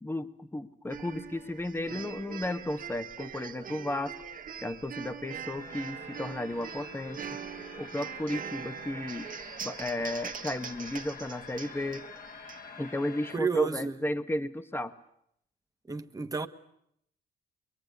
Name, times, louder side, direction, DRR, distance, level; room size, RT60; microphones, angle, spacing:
voice 1, 0.0-7.2 7.8-9.3 9.6-12.0 12.8-14.9, left 1 dB, 10° left, 1.4 m, -34 dB
sound 1, 0.9-12.6, right 7 dB, 45° right, 1.5 m, -42 dB
sound 2, 5.6-13.4, left 5 dB, 45° left, 2.7 m, -48 dB
voice 2, 13.3-14.0 15.9-16.5, right 5 dB, 20° right, 1.7 m, -31 dB
23.0 x 23.0 x 9.6 m
cardioid pair, 90°, 20 cm